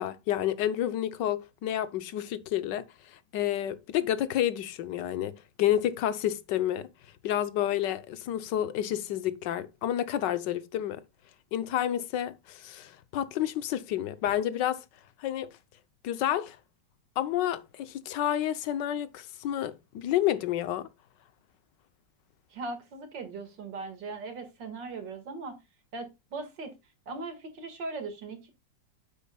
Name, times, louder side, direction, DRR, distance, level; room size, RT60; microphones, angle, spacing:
voice 1, 0.0-2.8 3.1-6.9 7.2-11.0 11.5-14.8 15.2-15.5 16.0-16.6 17.2-20.9, left 11 dB, 80° left, 1.4 m, -30 dB
voice 2, 22.5-25.6 25.9-26.7 27.1-28.5, right 3 dB, 85° right, 2.5 m, -39 dB
9.2 x 8.1 x 2.3 m
omnidirectional pair, 1.9 m